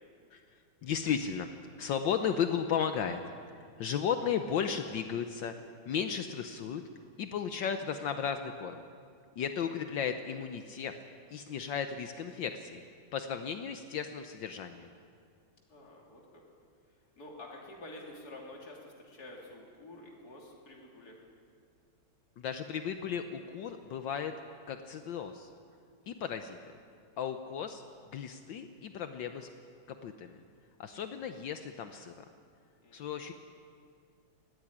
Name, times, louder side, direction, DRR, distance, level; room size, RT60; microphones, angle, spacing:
voice 1, 0.8-1.5 1.8-3.2 3.8-5.5 5.9-6.8 7.2-8.8 9.4-10.9 11.3-12.8 13.1-14.9 22.4-24.3 24.7-25.5 26.1-26.6 27.2-27.8 28.1-29.5 29.9-30.4 30.8-32.2 32.9-33.3, left 7 dB, 70° left, 7 dB, 1.5 m, -34 dB
voice 2, 9.4-9.7 15.7-16.4 17.2-21.2 32.8-33.2, left 1 dB, 50° left, -2 dB, 3.5 m, -49 dB
18.0 x 14.5 x 9.9 m, 2.2 s
omnidirectional pair, 2.2 m